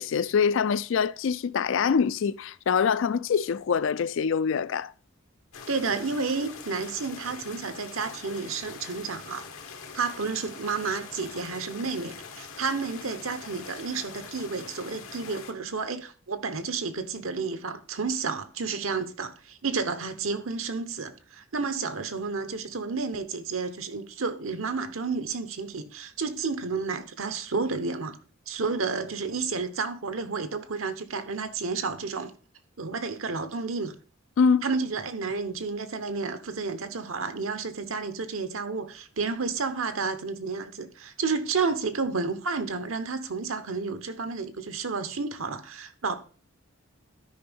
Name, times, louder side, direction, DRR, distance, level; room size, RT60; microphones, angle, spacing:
voice 1, 0.0-4.9 34.4-34.6, left 6 dB, 65° left, 0.4 m, -24 dB
sound 1, 5.5-15.5, left 5 dB, 85° left, 1.4 m, -43 dB
voice 2, 5.7-9.5 9.9-28.2 28.5-32.3 32.8-33.9 34.6-46.1, right 4 dB, 75° right, 1.0 m, -31 dB
12.5 x 5.2 x 3.6 m
head